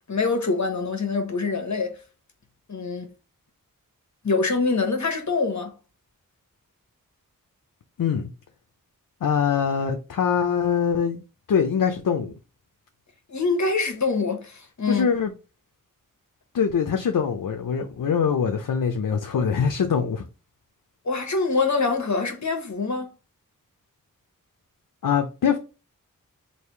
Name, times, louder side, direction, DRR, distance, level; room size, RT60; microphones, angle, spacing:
voice 1, 0.1-2.0 2.7-3.1 4.2-5.7 13.3-15.1 21.0-23.1, left 4 dB, 55° left, 1.1 m, -25 dB
voice 2, 8.0-8.3 9.2-11.2 11.5-12.3 14.9-15.3 16.5-20.3 25.0-25.6, left 7 dB, 75° left, 0.6 m, -23 dB
3.4 x 2.6 x 4.4 m
wide cardioid pair, 50°, 33 cm